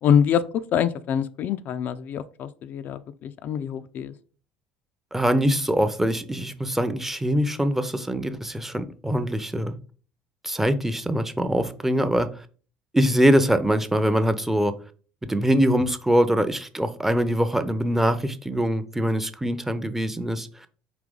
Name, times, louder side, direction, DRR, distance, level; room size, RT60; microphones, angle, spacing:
voice 1, 0.0-0.4 0.7-4.1, left 8 dB, 50° left, 11 dB, 0.3 m, -25 dB
voice 2, 5.1-9.7 10.4-12.3 12.9-14.7 15.2-20.5, equal, 5° right, 11 dB, 0.5 m, -23 dB
4.9 x 2.8 x 3.7 m, 0.41 s
figure-of-eight pair, 60°, 4 cm